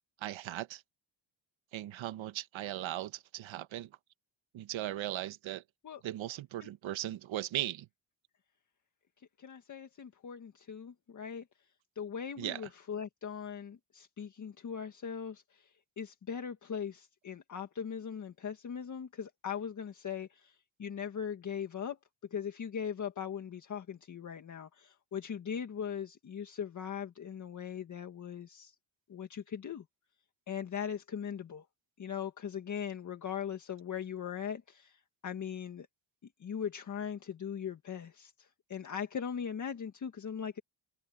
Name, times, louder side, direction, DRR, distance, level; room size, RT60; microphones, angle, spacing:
voice 1, 0.2-0.8 1.7-3.9 4.5-5.6 6.0-7.9 12.4-12.6, right 13 dB, 75° right, 1.4 m, -38 dB
voice 2, 9.4-11.4 12.0-22.0 22.3-28.7 29.1-29.8 30.5-31.7 32.0-35.9 36.4-40.6, left 7 dB, 40° left, 1.8 m, -40 dB
open air
cardioid pair, 165°, 47 cm